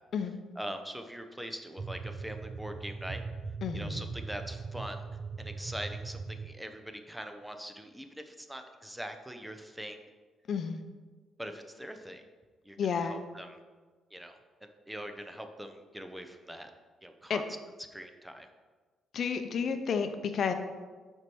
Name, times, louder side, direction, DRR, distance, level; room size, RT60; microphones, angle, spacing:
voice 1, 0.6-3.2 3.7-5.0 5.4-10.0 11.4-12.2 12.6-13.6 14.1-16.7 17.0-17.4 17.9-18.5, equal, 5° right, 6 dB, 0.8 m, -42 dB
sound 1, 1.8-6.5, right 4 dB, 40° right, 0.3 m, -40 dB
voice 2, 3.6-4.0 10.5-10.8 12.8-13.2 17.3-17.4 19.1-20.5, left 6 dB, 60° left, 8 dB, 0.7 m, -31 dB
5.9 x 4.6 x 6.2 m, 1.4 s
cardioid pair, 90°, 0 cm